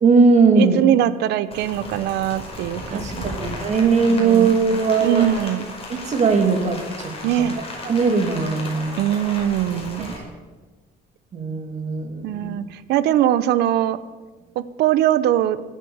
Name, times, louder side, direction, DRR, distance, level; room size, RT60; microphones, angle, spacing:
voice 1, 0.0-0.8 2.9-5.3 5.9-9.0 10.0-10.3 11.3-12.5, right 4 dB, 45° right, 4 dB, 2.6 m, -19 dB
voice 2, 0.6-3.4 4.0-4.6 5.0-5.7 7.2-7.6 9.0-10.1 12.2-14.0 14.6-15.6, right 12 dB, 80° right, 15 dB, 0.8 m, -21 dB
Rain, 1.5-10.2, left 2 dB, 35° left, 5.2 m, -35 dB
19.0 x 8.4 x 7.1 m, 1.3 s
cardioid pair, 110°, 17 cm